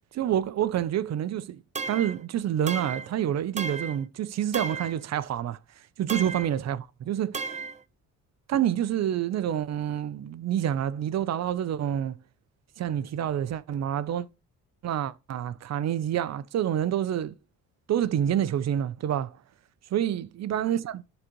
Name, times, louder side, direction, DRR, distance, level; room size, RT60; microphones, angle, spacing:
voice 1, 0.1-1.6 1.9-5.6 6.0-7.4 8.5-12.1 12.8-14.3 14.8-17.4 17.9-19.3 19.9-21.0, right 10 dB, 60° right, 0.7 m, -28 dB
sound 1, 1.8-2.2 2.7-3.1 3.6-4.0 4.5-5.0 6.1-6.5 7.3-7.8, right 4 dB, 25° right, 0.7 m, -34 dB
11.5 x 4.0 x 3.0 m
cardioid pair, 90°, 30 cm